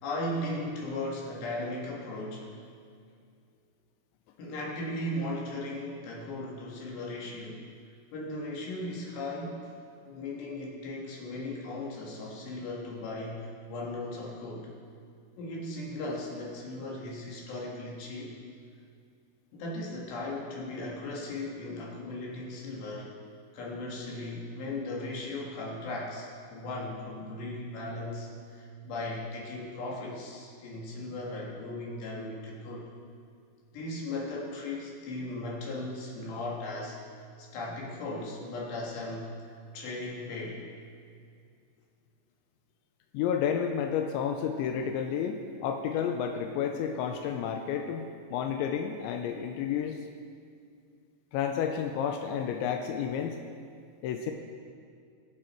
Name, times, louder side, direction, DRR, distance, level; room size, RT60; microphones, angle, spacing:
voice 1, 0.0-2.6 4.4-7.7 8.1-9.7 10.1-14.7 15.4-18.4 19.5-23.1 23.5-32.9 33.7-37.0 37.4-39.5 39.7-40.7, left 2 dB, 65° left, -3 dB, 3.6 m, -37 dB
voice 2, 43.1-50.0 51.3-53.4 54.0-54.3, left 8 dB, 90° left, 4 dB, 2.6 m, -31 dB
22.5 x 7.8 x 4.4 m, 2.3 s
omnidirectional pair, 5.9 m